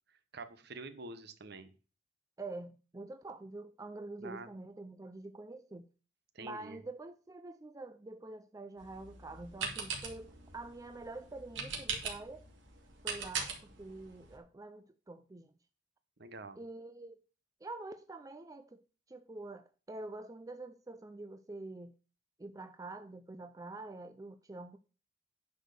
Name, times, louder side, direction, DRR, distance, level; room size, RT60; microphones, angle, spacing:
voice 1, 0.3-1.7 4.2-4.5 6.3-6.8 16.2-16.6, right 3 dB, 60° right, 1.1 m, -46 dB
voice 2, 2.4-5.9 6.4-12.5 13.0-15.5 16.6-17.2 17.6-18.8 19.1-21.9 22.4-24.8, right 2 dB, 20° right, 0.4 m, -46 dB
sound 1, 8.8-14.4, right 5 dB, 80° right, 2.4 m, -42 dB
10.0 x 4.7 x 6.6 m
head